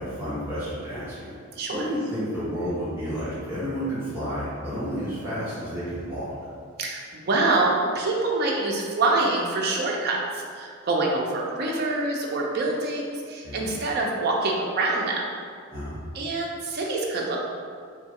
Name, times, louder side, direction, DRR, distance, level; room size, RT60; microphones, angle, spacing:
voice 1, 0.0-1.3 1.7-6.3 13.4-13.7 15.7-16.0, equal, 10° right, -15 dB, 0.9 m, -31 dB
voice 2, 1.5-1.9 6.8-15.3 16.1-17.4, right 2 dB, 50° right, -2 dB, 0.4 m, -25 dB
3.0 x 2.3 x 2.8 m, 2.1 s
head